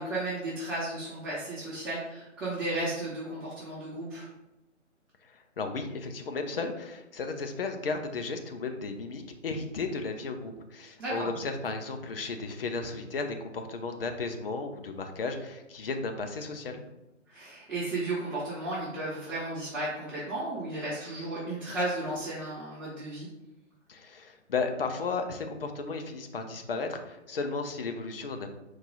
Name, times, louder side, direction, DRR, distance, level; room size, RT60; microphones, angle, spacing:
voice 1, 0.0-4.2 11.0-11.3 17.3-23.3, right 2 dB, 5° right, -13 dB, 0.8 m, -34 dB
voice 2, 5.6-16.8 23.9-28.5, left 4 dB, 50° left, 5 dB, 0.7 m, -34 dB
4.6 x 2.8 x 3.8 m, 0.94 s
figure-of-eight pair, 140°, 38 cm